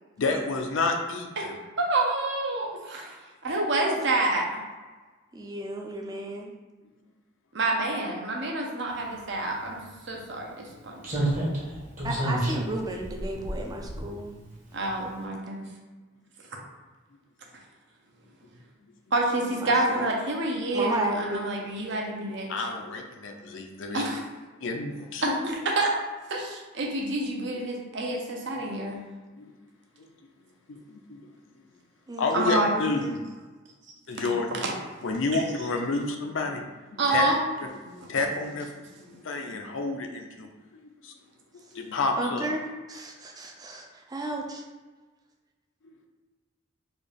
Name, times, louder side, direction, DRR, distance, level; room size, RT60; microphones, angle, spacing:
voice 1, 0.2-1.6 18.8-18.9 22.5-24.1 24.6-25.3 28.1-28.2 28.5-28.6 29.4-29.6 30.0-30.1 30.7-31.3 31.5-31.6 32.2-33.2 34.1-34.6 35.0-36.6 36.9-37.2 37.6-41.1 41.7-42.5 45.8-46.1, left 3 dB, 70° left, 4 dB, 0.5 m, -30 dB
voice 2, 1.8-3.2 3.4-4.6 7.5-10.9 14.7-15.6 16.5-16.6 19.1-22.5 23.9-24.2 25.2-25.9 26.3-29.0 32.3-32.7 34.6-34.7 35.3-35.4 37.0-37.4, right 2 dB, 60° right, 0 dB, 0.7 m, -28 dB
voice 3, 3.9-4.2 5.3-6.5 12.0-14.3 19.6-20.1 20.7-21.5 32.1-33.2 42.2-42.6 42.9-44.6, right 1 dB, 20° right, 1 dB, 0.4 m, -33 dB
Slam, 9.6-9.7 11.0-14.5 14.8-15.0, right 1 dB, 40° right, 1.1 m, -30 dB
3.9 x 2.4 x 3.4 m, 1.3 s
head